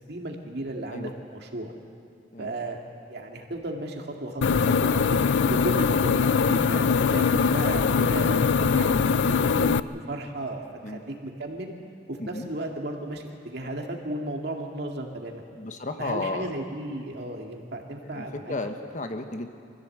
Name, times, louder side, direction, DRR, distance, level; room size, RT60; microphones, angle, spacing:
voice 1, 0.1-1.7 2.4-2.8 3.1-5.2 5.5-9.0 9.3-11.7 12.1-15.4 16.0-18.5, right 1 dB, 65° right, 2 dB, 2.2 m, -34 dB
sound 1, 4.4-9.8, left 5 dB, 80° left, 0.5 m, -22 dB
voice 2, 15.5-16.5 18.0-19.5, left 2 dB, 45° left, 6 dB, 1.2 m, -33 dB
24.0 x 15.0 x 7.8 m, 2.4 s
head